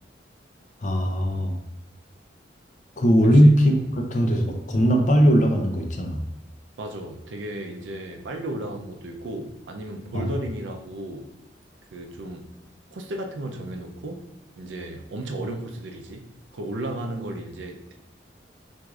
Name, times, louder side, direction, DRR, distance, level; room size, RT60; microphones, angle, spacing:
voice 1, 0.8-1.6 3.0-6.2 10.1-10.3, equal, 40° left, 3 dB, 0.5 m, -19 dB
voice 2, 3.2-3.8 6.8-11.3 11.9-12.6 12.9-14.3 14.6-16.2 16.5-17.9, right 1 dB, 85° right, 4 dB, 0.5 m, -34 dB
6.0 x 2.6 x 2.4 m, 0.91 s
head